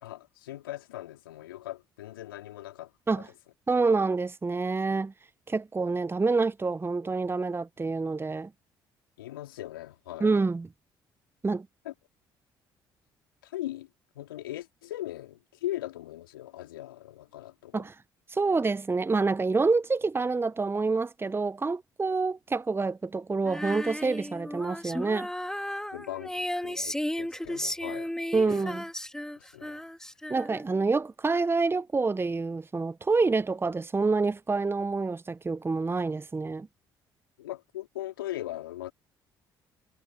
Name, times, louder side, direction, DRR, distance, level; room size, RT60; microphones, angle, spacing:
voice 1, 0.0-2.9 3.2-3.3 9.2-10.3 11.8-11.9 13.4-13.9 14.1-17.9 25.9-28.7 29.4-29.8 37.4-38.9, left 14 dB, 80° left, 3.2 m, -39 dB
voice 2, 3.7-5.1 5.5-8.5 10.2-10.7 11.4-11.7 17.7-17.9 18.3-25.3 28.3-28.8 30.3-36.7, right 4 dB, 20° right, 1.0 m, -27 dB
Female singing, 23.5-30.8, left 1 dB, 5° left, 2.5 m, -35 dB
figure-of-eight pair, 50°, 12 cm